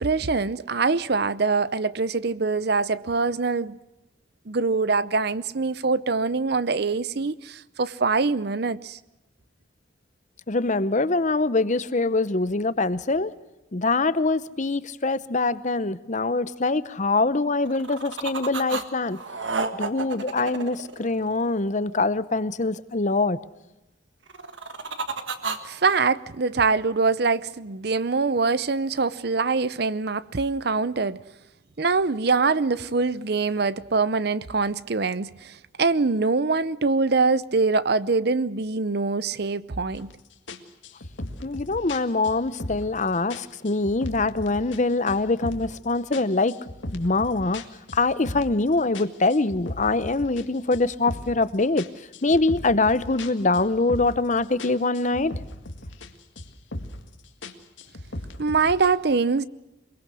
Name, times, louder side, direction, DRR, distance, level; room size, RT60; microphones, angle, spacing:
voice 1, 0.0-3.8 4.5-9.0 25.6-31.2 31.8-40.1 58.4-59.5, right 4 dB, 55° right, 0.7 m, -24 dB
voice 2, 10.5-13.3 13.7-19.2 19.8-23.4 41.4-46.5 46.9-47.6 47.9-51.9 52.2-55.3, left 3 dB, 40° left, 0.8 m, -24 dB
sound 1, 17.6-18.8 19.1-21.6 24.3-26.0, right 4 dB, 75° right, 1.8 m, -31 dB
sound 2, 39.9-40.1 40.5-43.0 43.3-44.8 45.1-45.8 46.1-48.6 48.9-51.4 51.8-54.3 54.6-56.1 56.4-57.1 57.4-58.9, left 1 dB, 80° left, 2.0 m, -37 dB
23.5 x 22.5 x 6.3 m
head